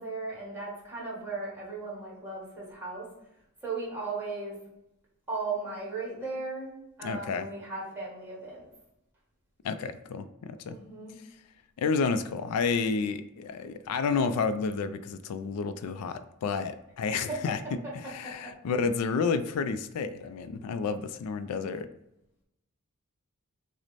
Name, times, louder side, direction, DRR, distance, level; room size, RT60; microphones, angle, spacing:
voice 1, 0.0-3.1 3.6-4.6 5.3-8.7 10.7-11.2 17.3-17.4 17.8-18.5, right 3 dB, 10° right, -4 dB, 1.5 m, -37 dB
voice 2, 7.0-7.5 9.6-10.8 11.8-17.6 18.1-21.9, left 5 dB, 80° left, 11 dB, 0.3 m, -30 dB
6.1 x 2.1 x 4.0 m, 0.86 s
head